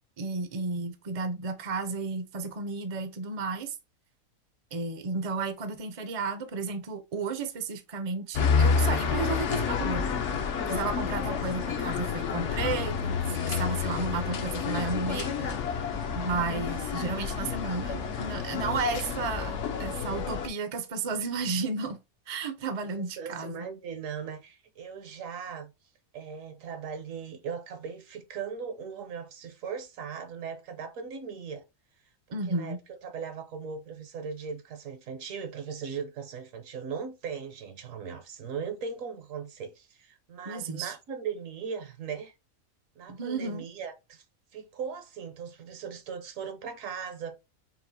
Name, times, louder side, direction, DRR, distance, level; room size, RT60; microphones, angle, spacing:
voice 1, 0.2-3.7 4.7-10.1 10.7-13.2 13.5-15.5 16.1-22.0 22.3-23.7 32.3-32.8 40.5-40.9 43.1-43.7, right 4 dB, 40° right, 0.5 m, -33 dB
sound 1, 8.3-20.5, left 6 dB, 60° left, 0.9 m, -29 dB
voice 2, 11.1-11.7 23.0-25.7 26.1-31.6 32.3-42.3 43.0-44.2 44.5-47.4, right 6 dB, 70° right, 1.1 m, -38 dB
5.6 x 2.4 x 2.7 m
omnidirectional pair, 1.5 m